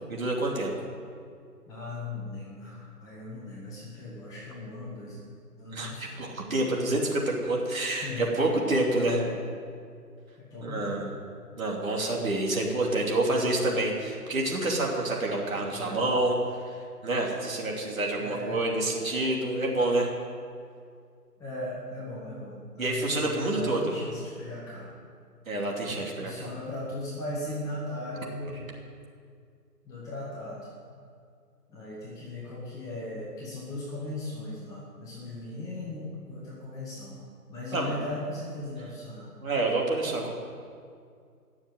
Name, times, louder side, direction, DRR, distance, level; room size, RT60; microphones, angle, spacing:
voice 1, 0.1-0.7 5.7-9.2 10.6-11.1 11.6-16.4 16.7-16.8 17.0-20.1 22.8-23.9 25.5-26.5 37.7-38.0 39.4-40.3, right 2 dB, 55° right, -1 dB, 2.9 m, -28 dB
voice 2, 1.7-5.2 5.6-6.1 8.0-8.3 9.0-9.3 10.5-11.0 15.7-16.1 18.2-18.6 21.4-24.9 26.2-28.7 29.8-30.6 31.7-37.2 37.5-39.3, left 2 dB, 5° left, -8 dB, 1.6 m, -38 dB
18.0 x 7.2 x 7.8 m, 2.2 s
figure-of-eight pair, 145°, 48 cm